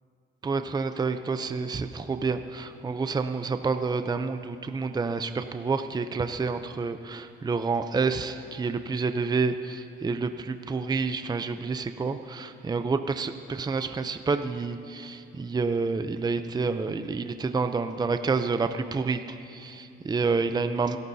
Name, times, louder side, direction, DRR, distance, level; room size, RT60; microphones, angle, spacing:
voice 1, 0.4-21.0, right 4 dB, 20° right, 9 dB, 0.6 m, -29 dB
28.5 x 12.0 x 2.8 m, 2.5 s
cardioid pair, 90°, 20 cm